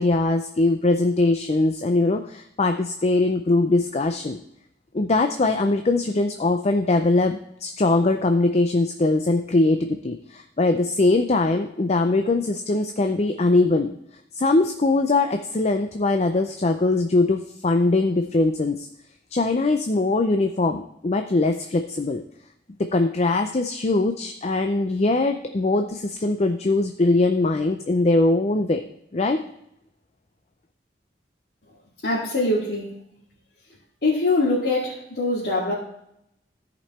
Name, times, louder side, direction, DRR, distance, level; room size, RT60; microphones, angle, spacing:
voice 1, 0.0-4.4 4.9-13.9 14.3-18.9 19.3-22.2 22.8-28.8 29.1-29.4, left 2 dB, 40° left, 6 dB, 0.5 m, -21 dB
voice 2, 32.0-33.0 34.0-35.7, left 2 dB, 60° left, -7 dB, 2.4 m, -23 dB
14.0 x 5.3 x 4.3 m, 0.77 s
head